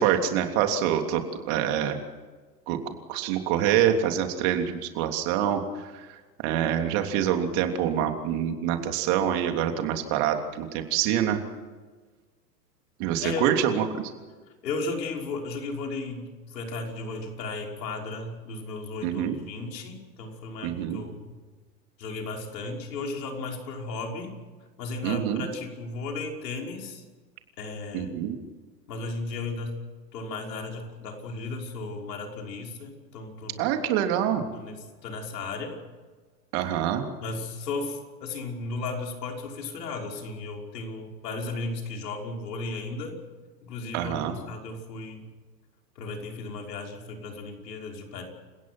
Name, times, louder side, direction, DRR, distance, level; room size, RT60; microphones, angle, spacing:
voice 1, 0.0-2.0 2.7-2.8 3.1-6.2 6.4-11.4 13.0-14.0 19.0-19.4 20.6-21.0 25.0-25.4 27.9-28.4 33.6-34.4 36.5-37.0 43.9-44.3, right 10 dB, 50° right, 5 dB, 3.3 m, -26 dB
voice 2, 14.6-21.4 22.0-24.3 24.8-27.0 27.6-28.1 28.9-29.8 30.1-33.7 34.5-35.8 37.2-43.2 43.6-45.3 46.0-48.3, left 3 dB, 75° left, 1 dB, 5.8 m, -35 dB
29.5 x 17.0 x 6.2 m, 1.3 s
hypercardioid pair, 110°, 49 cm